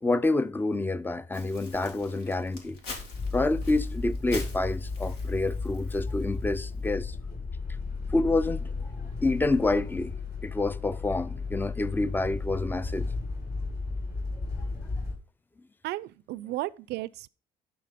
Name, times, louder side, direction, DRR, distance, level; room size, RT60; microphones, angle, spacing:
voice 1, 0.0-2.8 3.3-7.2 8.1-8.9 9.2-10.1 10.4-13.1 14.6-14.7, left 2 dB, 10° left, 0.4 m, -28 dB
Crumpling crinkling, 1.3-6.9, left 3 dB, 80° left, 2.4 m, -45 dB
sound 1, 3.1-15.1, left 4 dB, 65° left, 5.0 m, -34 dB
voice 2, 15.8-17.3, right 17 dB, 80° right, 0.5 m, -34 dB
11.0 x 4.1 x 5.1 m
cardioid pair, 110°, 17 cm